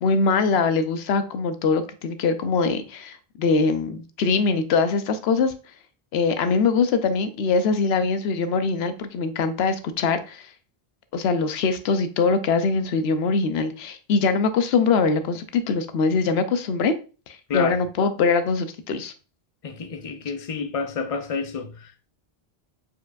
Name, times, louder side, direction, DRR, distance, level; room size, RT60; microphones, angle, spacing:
voice 1, 0.0-5.5 6.1-10.5 11.1-16.9 17.3-19.1, left 4 dB, 80° left, 0.8 m, -22 dB
voice 2, 19.6-22.1, left 5 dB, 45° left, 0.5 m, -29 dB
4.7 x 4.5 x 2.4 m
omnidirectional pair, 1.1 m